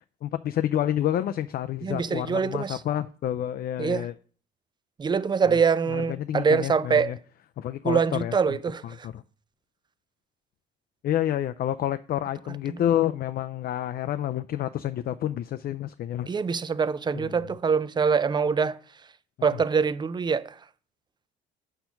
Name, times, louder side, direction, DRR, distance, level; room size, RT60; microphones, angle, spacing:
voice 1, 0.2-4.1 5.5-5.6 5.9-7.2 7.6-8.6 9.0-9.2 11.0-16.3 17.1-17.5 19.4-19.6, left 11 dB, 50° left, 0.4 m, -29 dB
voice 2, 1.8-2.8 3.8-4.1 5.0-7.1 7.8-9.1 12.7-12.8 16.3-18.8 19.4-20.6, right 5 dB, 20° right, 0.4 m, -24 dB
7.9 x 4.4 x 5.7 m
cardioid pair, 110°, 20 cm